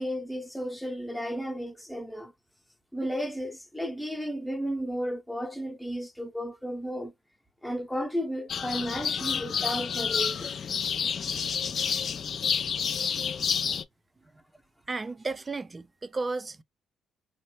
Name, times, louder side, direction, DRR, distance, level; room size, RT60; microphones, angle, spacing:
voice 1, 0.0-2.3 2.9-7.1 7.6-10.5, equal, 5° left, 0.7 m, -33 dB
sound 1, 8.5-13.8, left 7 dB, 55° left, 0.3 m, -29 dB
voice 2, 14.9-16.6, right 3 dB, 30° right, 0.4 m, -34 dB
3.0 x 2.1 x 3.0 m
supercardioid pair, 65°, 0 cm